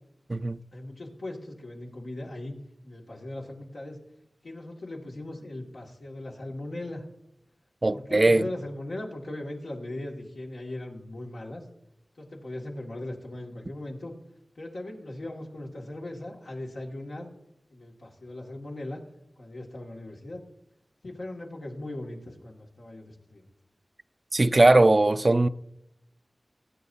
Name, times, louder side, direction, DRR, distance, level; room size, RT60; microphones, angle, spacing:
voice 1, 0.7-2.5 2.8-4.0 4.4-7.0 7.9-11.6 12.2-14.1 14.6-17.3 17.7-19.0 19.4-20.4 21.0-23.4, left 1 dB, 85° left, 2.1 m, -39 dB
voice 2, 7.8-8.4 24.3-25.5, right 2 dB, 45° right, 0.4 m, -19 dB
19.5 x 8.9 x 2.7 m
wide cardioid pair, 45°, 0 cm